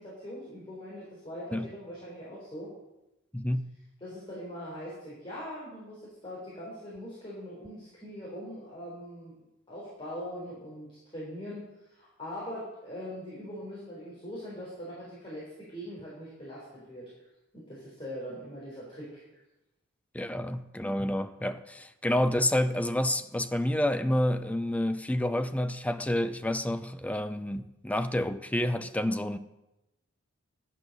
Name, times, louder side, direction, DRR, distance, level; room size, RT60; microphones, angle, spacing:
voice 1, 0.0-2.7 4.0-9.3 9.7-17.1 17.5-19.2, equal, 25° left, 3.9 m, -42 dB
voice 2, 3.3-3.7 20.1-29.4, left 1 dB, 5° left, 0.5 m, -29 dB
11.0 x 8.4 x 6.6 m
head